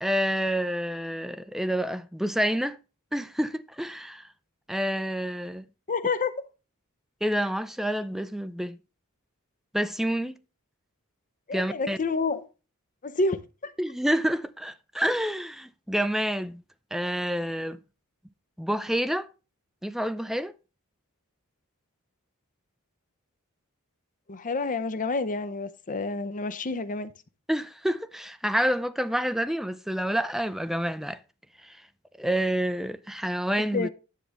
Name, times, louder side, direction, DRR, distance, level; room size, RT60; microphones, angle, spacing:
voice 1, 0.0-2.8 3.1-4.2 4.7-5.7 7.2-8.8 9.7-10.3 11.5-12.0 13.8-16.6 16.9-17.8 18.6-19.3 19.8-20.5 27.5-31.2 31.7-31.8 32.2-33.9, equal, ahead, 0.4 m, -28 dB
voice 2, 5.9-6.4 11.5-12.4 13.0-13.4 24.3-27.1 33.7-33.9, left 3 dB, 35° left, 0.7 m, -28 dB
10.0 x 6.6 x 3.5 m
head